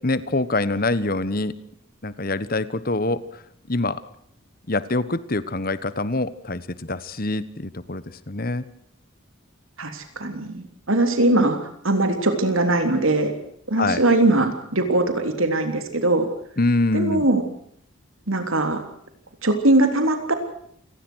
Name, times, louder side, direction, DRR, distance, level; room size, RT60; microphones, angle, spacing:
voice 1, 0.0-1.5 2.0-3.2 3.7-4.0 4.7-8.6 13.8-14.0 16.6-17.3, left 2 dB, 40° left, 15 dB, 1.3 m, -25 dB
voice 2, 9.8-11.6 11.8-13.3 13.7-16.3 16.9-17.4 18.3-18.8 19.4-20.3, right 2 dB, 70° right, 6 dB, 3.5 m, -21 dB
28.0 x 20.0 x 6.4 m, 0.69 s
head